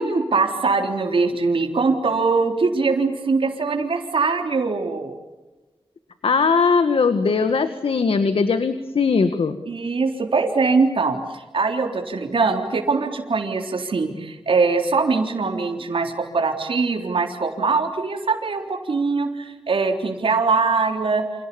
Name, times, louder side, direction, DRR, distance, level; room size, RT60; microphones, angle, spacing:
voice 1, 0.0-5.2 9.7-21.2, right 4 dB, 70° right, 3 dB, 3.8 m, -22 dB
voice 2, 6.2-9.6, left 5 dB, 90° left, 9 dB, 1.7 m, -19 dB
29.5 x 28.0 x 7.1 m, 1.1 s
wide cardioid pair, 110°, 9 cm